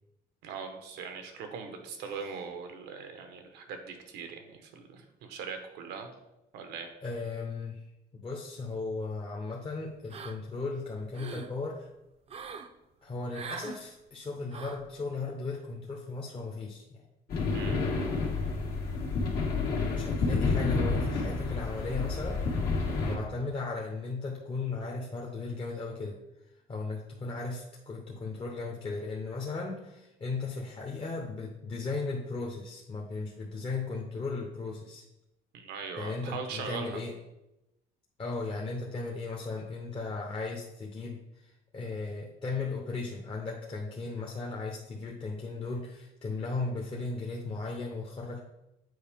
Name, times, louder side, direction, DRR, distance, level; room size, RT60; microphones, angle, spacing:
voice 1, 0.4-6.1 6.5-6.9 17.5-17.8 35.5-37.0, right 5 dB, 90° right, 5 dB, 1.1 m, -40 dB
voice 2, 7.0-7.8 8.1-11.9 13.0-16.8 19.7-22.4 23.0-26.2 26.7-35.0 36.0-37.1 38.2-48.4, left 3 dB, 30° left, -1 dB, 1.0 m, -36 dB
sound 1, 10.1-10.6 11.0-11.5 12.3-12.7 13.3-13.8 14.5-14.9, right 5 dB, 40° right, 0.6 m, -42 dB
sound 2, 17.3-23.2, left 3 dB, 65° left, 1.8 m, -29 dB
7.9 x 4.6 x 3.6 m, 0.90 s
cardioid pair, 110°, 17 cm